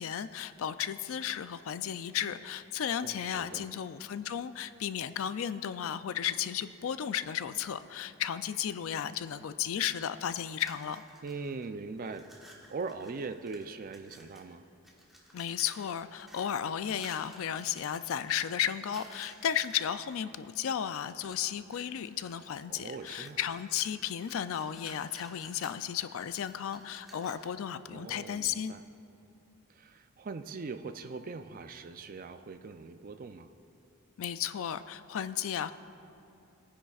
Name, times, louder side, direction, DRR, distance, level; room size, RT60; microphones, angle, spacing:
voice 1, 0.0-11.0 15.3-28.7 34.2-35.7, left 9 dB, 65° left, 12 dB, 0.4 m, -34 dB
voice 2, 3.0-3.7 11.2-12.3 12.7-14.7 22.7-23.4 27.9-28.8 29.7-33.5, right 4 dB, 40° right, 8 dB, 0.4 m, -41 dB
sound 1, 10.4-11.7 11.9-14.5 14.8-20.0 20.5-21.4 21.7-27.6, right 1 dB, ahead, 1.2 m, -55 dB
19.0 x 10.0 x 2.4 m, 2.6 s
head